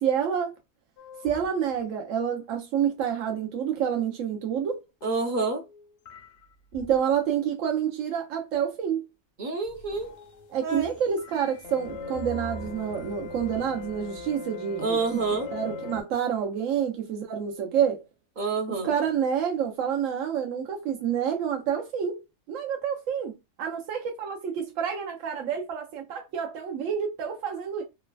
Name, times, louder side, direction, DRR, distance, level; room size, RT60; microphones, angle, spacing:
voice 1, 0.0-0.5 1.2-4.8 6.7-9.0 10.5-15.2 15.5-18.0 18.8-22.2 22.5-23.3 23.6-27.8, right 8 dB, 90° right, 1.0 m, -28 dB
sound 1, 1.0-1.8 2.2-2.3 4.5-4.6 5.0-7.1 9.6-16.0, left 3 dB, 70° left, 0.8 m, -40 dB
voice 2, 5.0-5.6 9.4-10.1 10.6-10.9 14.8-15.5 18.4-18.9, right 3 dB, 50° right, 0.6 m, -28 dB
3.1 x 2.2 x 2.2 m
omnidirectional pair, 1.3 m